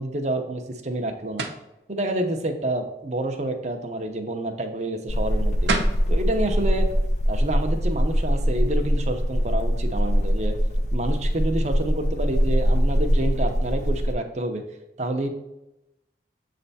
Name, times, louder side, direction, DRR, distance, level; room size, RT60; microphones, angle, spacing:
voice 1, 0.0-1.5 1.9-5.7 6.1-6.9 7.3-10.6 10.9-14.6 15.0-15.3, right 1 dB, 40° right, 4 dB, 0.7 m, -28 dB
sound 1, 1.4-1.7 5.3-5.4 5.7-6.0, right 3 dB, 80° right, 0.8 m, -26 dB
sound 2, 5.1-14.1, equal, 40° left, 0.6 m, -23 dB
7.8 x 3.4 x 4.1 m, 0.91 s
head